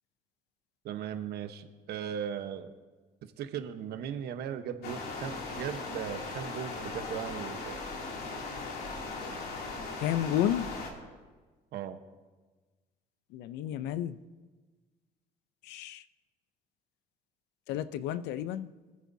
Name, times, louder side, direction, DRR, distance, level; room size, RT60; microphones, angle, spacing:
voice 1, 0.8-2.7 3.2-7.8 11.7-12.0, right 9 dB, 75° right, 8 dB, 1.1 m, -38 dB
sound 1, 4.8-10.9, left 3 dB, 70° left, 2.8 m, -38 dB
voice 2, 10.0-10.7 13.3-14.2 15.7-16.0 17.7-18.7, left 11 dB, 90° left, 14 dB, 0.6 m, -31 dB
25.0 x 9.3 x 2.7 m, 1.3 s
cardioid pair, 110°, 17 cm